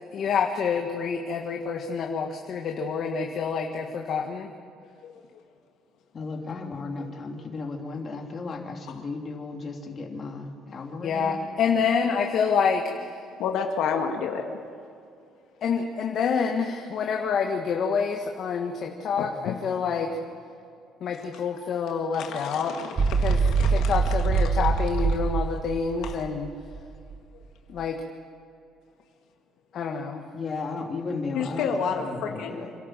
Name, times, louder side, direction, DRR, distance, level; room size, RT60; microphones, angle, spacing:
voice 1, 0.1-4.5 11.0-13.1 15.6-20.1 21.0-22.7 23.2-23.4 23.7-26.5 27.7-28.0 29.7-30.2, left 6 dB, 50° left, 2 dB, 1.7 m, -27 dB
voice 2, 6.1-11.5 30.3-32.7, left 3 dB, 35° left, 1 dB, 3.0 m, -35 dB
voice 3, 13.4-14.5 19.2-19.6 22.2-23.9 26.0-26.1 31.3-32.7, left 6 dB, 75° left, 3 dB, 1.9 m, -30 dB
sound 1, 23.0-27.2, right 5 dB, 35° right, 1.0 m, -24 dB
27.5 x 12.5 x 7.7 m, 2.4 s
cardioid pair, 130°, 0 cm